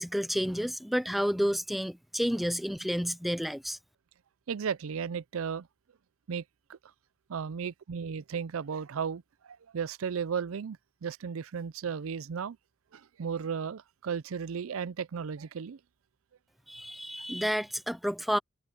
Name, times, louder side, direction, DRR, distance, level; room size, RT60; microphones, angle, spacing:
voice 1, 0.0-3.8 16.7-18.4, equal, ahead, 0.4 m, -30 dB
voice 2, 4.5-5.7 6.3-6.4 6.7-6.8 7.3-12.6 12.9-15.8, right 6 dB, 85° right, 0.5 m, -35 dB
head